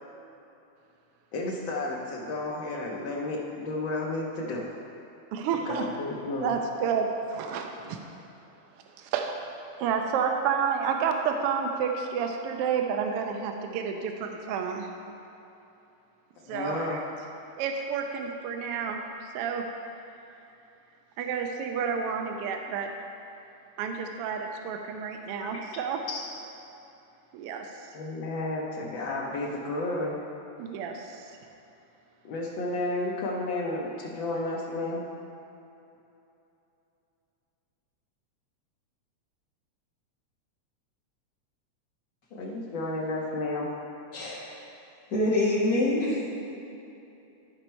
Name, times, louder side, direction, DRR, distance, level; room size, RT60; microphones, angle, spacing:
voice 1, 1.3-4.8 5.6-6.5 16.4-17.0 25.4-25.5 26.1-26.2 27.9-30.2 32.2-35.0 42.3-43.7, left 2 dB, 85° left, -3 dB, 1.0 m, -32 dB
voice 2, 5.3-5.9 6.4-8.0 9.0-9.4 9.8-14.9 16.5-17.0 17.6-19.0 19.3-19.6 21.2-22.9 23.8-26.0 27.3-27.9 30.6-31.3, right 6 dB, 85° right, 4 dB, 1.3 m, -30 dB
voice 3, 44.1-44.6 45.1-46.2, left 1 dB, 35° left, -9 dB, 2.3 m, -25 dB
12.5 x 5.2 x 4.4 m, 2.9 s
omnidirectional pair, 3.3 m